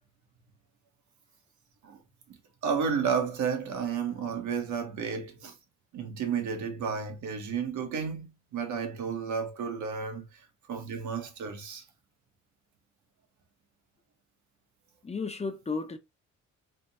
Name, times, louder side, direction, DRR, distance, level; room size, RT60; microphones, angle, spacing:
voice 1, 2.6-5.5 5.9-10.4 10.7-11.8, right 6 dB, 75° right, 1.2 m, -32 dB
voice 2, 15.0-16.0, left 4 dB, 20° left, 0.7 m, -34 dB
3.5 x 2.3 x 4.1 m
cardioid pair, 90°, 30 cm